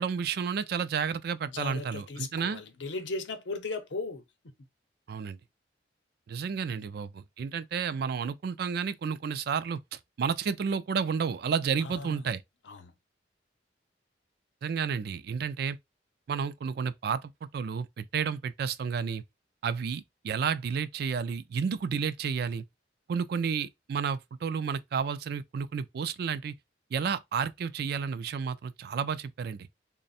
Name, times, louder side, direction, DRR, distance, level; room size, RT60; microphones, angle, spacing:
voice 1, 0.0-2.6 5.1-5.4 6.3-12.4 14.6-15.8 16.3-19.2 19.6-22.6 23.1-26.5 26.9-29.7, right 6 dB, 55° right, 0.3 m, -31 dB
voice 2, 1.5-4.2 11.8-12.3 12.6-12.9, left 3 dB, 80° left, 0.7 m, -37 dB
3.4 x 2.1 x 4.0 m
head